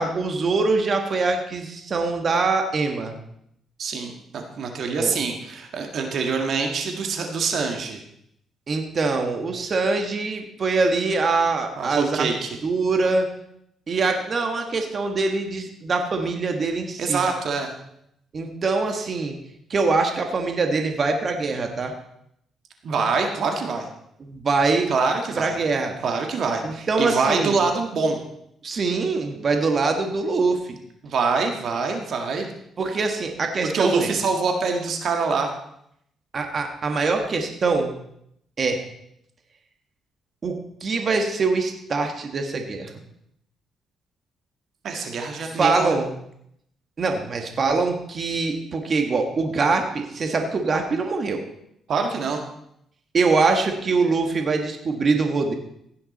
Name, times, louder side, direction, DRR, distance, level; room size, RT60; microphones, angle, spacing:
voice 1, 0.0-3.1 5.0-5.1 8.7-12.3 12.6-13.3 13.9-17.2 18.3-19.3 19.7-21.9 24.2-24.9 25.4-26.0 26.6-27.6 28.6-30.8 32.8-34.1 36.3-37.9 38.6-38.8 40.4-40.6 40.8-43.0 45.6-46.1 47.0-51.4 53.1-55.5, right 3 dB, 45° right, 4 dB, 1.7 m, -23 dB
voice 2, 3.8-8.0 11.8-12.6 17.0-17.7 22.8-23.9 24.9-25.6 26.0-28.2 31.0-32.5 33.6-35.5 44.8-45.9 51.9-52.4, right 4 dB, 60° right, 3 dB, 1.7 m, -25 dB
16.0 x 9.7 x 4.2 m, 0.74 s
cardioid pair, 90°, 0 cm